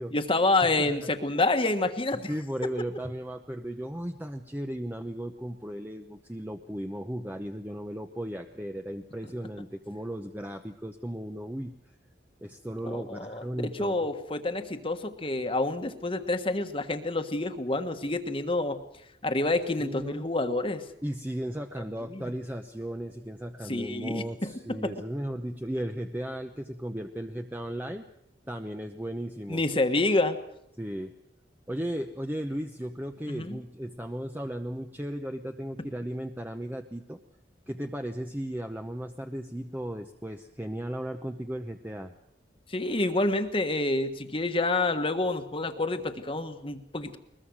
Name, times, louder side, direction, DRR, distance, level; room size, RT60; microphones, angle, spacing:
voice 1, 0.1-2.3 12.8-18.8 19.2-20.8 22.1-22.2 23.7-24.9 29.5-30.4 33.3-33.6 42.7-47.2, left 2 dB, 30° left, 7 dB, 1.4 m, -28 dB
voice 2, 0.8-1.1 2.3-11.7 12.4-14.1 19.8-20.3 21.0-28.1 28.5-29.6 30.8-31.1 31.7-37.2 37.7-42.1, equal, 10° right, 5 dB, 0.9 m, -36 dB
21.5 x 21.5 x 6.4 m, 0.79 s
head